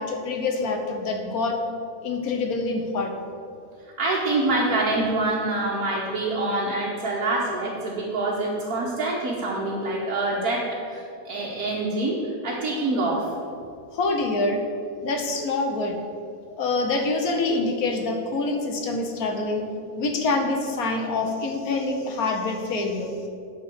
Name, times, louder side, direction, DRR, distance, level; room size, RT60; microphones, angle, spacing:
voice 1, 0.0-1.6 2.0-3.1 13.9-14.6 15.0-15.9 16.6-19.6 20.0-23.2, left 3 dB, 65° left, 4 dB, 1.4 m, -26 dB
voice 2, 4.0-13.3, right 2 dB, 65° right, -6 dB, 1.6 m, -26 dB
9.5 x 4.4 x 6.9 m, 2.4 s
omnidirectional pair, 1.7 m